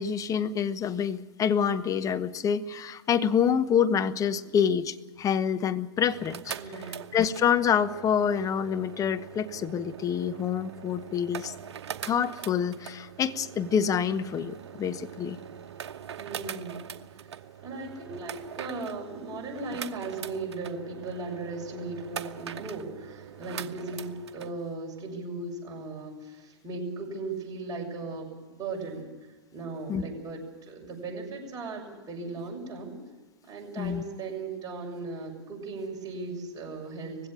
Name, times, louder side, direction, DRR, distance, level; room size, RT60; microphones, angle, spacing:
voice 1, 0.0-6.5 7.1-11.5 12.0-15.4 29.9-30.0 33.8-34.0, left 8 dB, 25° left, 12 dB, 1.0 m, -27 dB
sound 1, 6.0-24.5, right 8 dB, 70° right, 1.1 m, -42 dB
voice 2, 6.6-7.0 16.2-16.8 17.6-28.3 28.6-29.1 29.5-33.0 33.4-37.3, right 3 dB, 25° right, -1 dB, 6.7 m, -37 dB
20.0 x 16.5 x 8.9 m, 1.2 s
hypercardioid pair, 110°, 15 cm